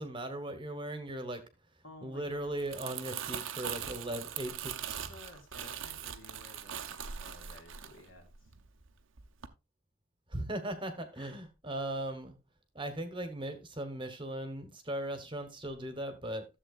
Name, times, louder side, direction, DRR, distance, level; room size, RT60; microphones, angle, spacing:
voice 1, 0.0-1.4 2.0-5.1 10.3-12.4 12.7-16.4, right 1 dB, 25° right, 1.1 m, -38 dB
voice 2, 1.8-2.5 3.9-4.7 5.1-8.5 11.1-11.3, left 1 dB, 60° left, 2.6 m, -55 dB
Crumpling crinkling, 2.4-8.8 9.2-9.5, right 9 dB, 65° right, 0.8 m, -41 dB
13.5 x 7.4 x 2.4 m
head